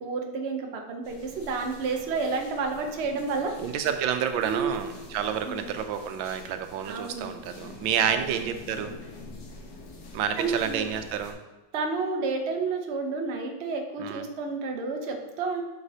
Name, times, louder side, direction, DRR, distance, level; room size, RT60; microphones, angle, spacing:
voice 1, 0.0-3.5 4.4-4.8 5.4-5.6 6.9-7.4 8.0-8.4 10.4-10.9 11.7-15.6, right 4 dB, 55° right, 3 dB, 0.7 m, -30 dB
sound 1, 1.0-11.3, left 2 dB, 55° left, 1.3 m, -46 dB
voice 2, 3.6-9.0 10.1-11.4 14.0-14.2, right 8 dB, 90° right, 8 dB, 1.4 m, -29 dB
8.0 x 5.2 x 2.7 m, 1.1 s
omnidirectional pair, 2.1 m